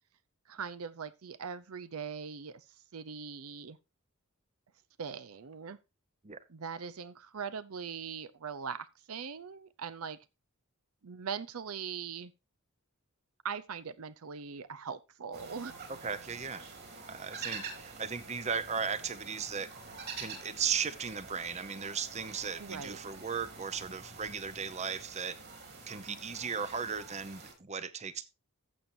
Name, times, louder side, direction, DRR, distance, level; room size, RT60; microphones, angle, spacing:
voice 1, 0.5-2.6 2.9-3.8 5.0-5.8 6.5-10.2 11.0-12.3 13.4-15.7 22.6-23.0, right 6 dB, 80° right, 0.7 m, -41 dB
sound 1, 15.3-27.5, right 4 dB, 50° right, 4.4 m, -47 dB
voice 2, 16.0-16.7 17.1-19.7 20.2-25.3 25.9-28.3, right 6 dB, 30° right, 0.8 m, -36 dB
15.0 x 7.1 x 2.7 m
head